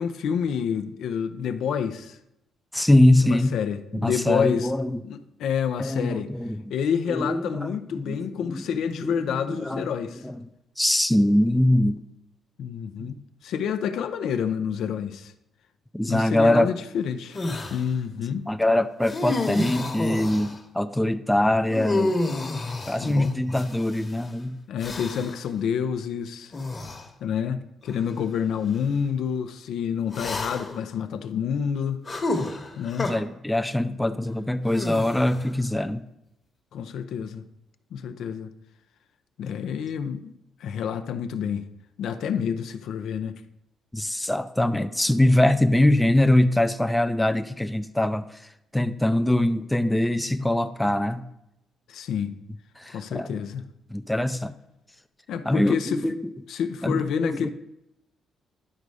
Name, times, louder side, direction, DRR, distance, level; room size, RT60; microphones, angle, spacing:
voice 1, 0.0-2.2 3.2-4.7 5.0-6.3 6.7-10.3 12.6-15.3 16.1-17.4 17.7-18.5 22.8-23.3 24.7-26.5 27.2-32.0 32.8-33.1 36.7-37.4 37.9-38.5 39.4-41.7 42.0-43.3 51.9-52.4 52.9-53.6 55.3-56.0 56.5-57.5, left 7 dB, 75° left, 0.6 m, -28 dB
voice 2, 2.7-3.6 3.9-5.0 5.8-6.6 7.1-8.2 8.5-8.6 9.0-9.9 10.2-10.5 10.8-12.0 13.0-13.1 15.9-16.7 18.5-22.2 22.9-24.6 33.0-36.0 43.9-48.4 48.7-51.3 52.8-53.4 53.9-54.5 55.4-56.3 56.8-57.5, left 1 dB, 5° left, 0.4 m, -23 dB
sound 1, 17.3-17.8 19.0-20.6 21.7-24.0 24.8-25.4 26.5-27.0 27.9-28.0 30.1-30.8 32.1-33.1 34.7-35.5, left 2 dB, 35° left, 1.2 m, -29 dB
11.0 x 4.0 x 4.8 m
cardioid pair, 90°, 0 cm